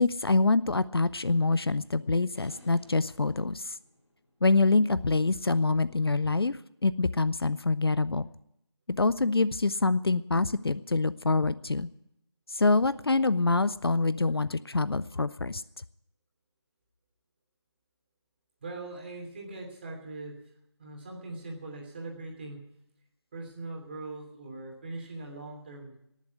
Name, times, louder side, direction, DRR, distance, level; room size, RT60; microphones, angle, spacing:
voice 1, 0.0-3.8 4.4-6.6 6.8-8.3 9.0-11.9 12.5-15.6, left 3 dB, 55° left, 17 dB, 0.6 m, -25 dB
sound 1, 2.4-4.8, left 1 dB, 30° left, 8.0 m, -55 dB
voice 2, 18.6-20.4 20.8-22.6 23.3-26.0, right 2 dB, 20° right, 0 dB, 2.9 m, -41 dB
19.0 x 7.4 x 9.2 m, 0.79 s
figure-of-eight pair, 165°, 15 cm